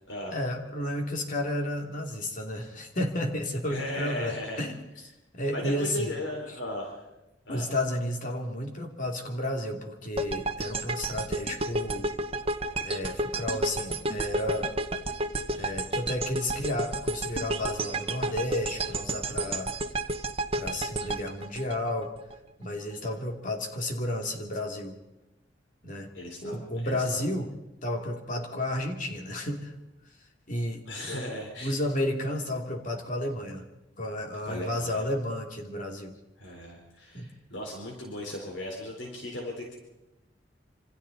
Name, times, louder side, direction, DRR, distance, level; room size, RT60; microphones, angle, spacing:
voice 1, 0.3-4.8 5.3-6.1 7.5-12.1 12.8-14.7 15.6-19.7 20.5-22.1 22.6-25.0 25.8-26.1 26.4-27.5 27.8-29.8 30.5-31.3 31.6-33.6 34.0-36.1 37.1-37.3, left 1 dB, 45° left, 2 dB, 2.8 m, -32 dB
voice 2, 3.7-4.7 5.5-7.0 7.5-7.7 23.0-23.2 26.1-27.2 30.9-31.7 34.4-35.1 36.4-39.8, left 1 dB, 85° left, 0 dB, 4.1 m, -37 dB
sound 1, 10.2-22.3, right 2 dB, 35° right, 1.2 m, -31 dB
27.0 x 25.5 x 4.1 m, 0.98 s
head